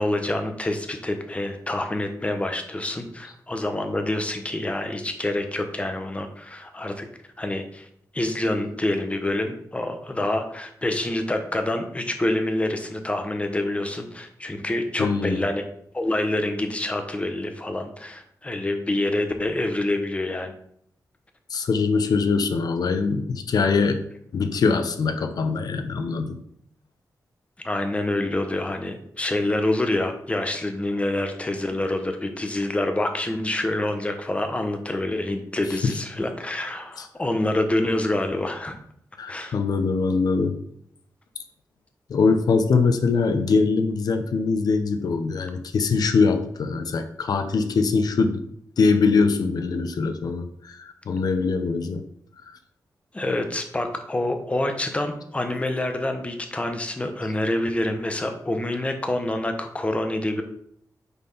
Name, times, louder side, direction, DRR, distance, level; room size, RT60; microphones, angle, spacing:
voice 1, 0.0-7.1 7.4-7.9 8.1-15.6 15.9-20.5 27.6-38.8 39.3-39.6 53.1-60.4, left 1 dB, 20° left, 6 dB, 1.1 m, -27 dB
voice 2, 15.0-15.5 21.5-24.1 24.3-26.4 35.6-36.0 37.0-37.1 39.2-40.6 42.1-48.4 48.8-52.0 52.5-52.6, left 4 dB, 75° left, 8 dB, 0.8 m, -23 dB
6.9 x 4.5 x 5.6 m, 0.69 s
wide cardioid pair, 115°, 7 cm